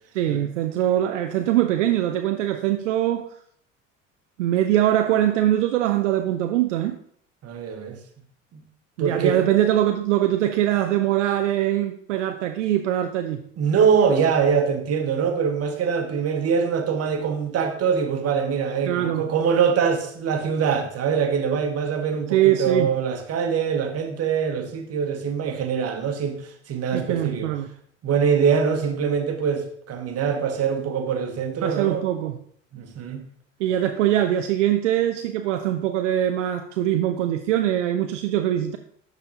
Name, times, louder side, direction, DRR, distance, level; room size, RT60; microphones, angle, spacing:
voice 1, 0.1-3.4 4.4-7.0 9.0-13.4 18.9-19.2 22.3-22.9 26.9-27.7 31.6-32.4 33.6-38.8, right 12 dB, 75° right, 7 dB, 0.5 m, -22 dB
voice 2, 7.4-8.0 8.5-8.6 9.0-9.4 13.6-26.4 26.7-27.5 28.0-32.0 32.7-33.2, right 6 dB, 40° right, 5 dB, 1.3 m, -23 dB
11.5 x 4.0 x 2.9 m, 0.63 s
figure-of-eight pair, 65°, 37 cm